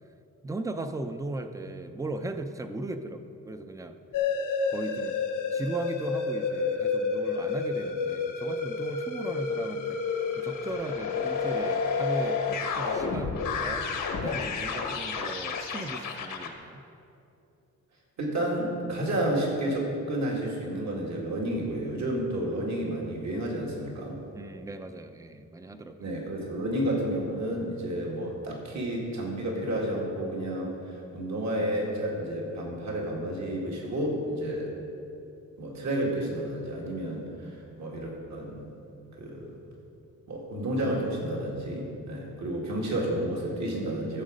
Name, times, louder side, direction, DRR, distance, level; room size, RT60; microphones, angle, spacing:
voice 1, 0.4-3.9 4.7-5.2 5.5-10.0 10.4-13.9 14.2-16.8 24.3-26.1, right 2 dB, 10° right, 8 dB, 0.5 m, -37 dB
sound 1, 4.1-16.5, left 5 dB, 80° left, 1.3 m, -30 dB
voice 2, 18.2-24.2 26.0-34.7 35.6-38.7 39.2-39.6 40.3-44.2, right 1 dB, 60° right, -2 dB, 2.2 m, -31 dB
14.5 x 7.3 x 5.1 m, 2.8 s
wide cardioid pair, 125°, 31 cm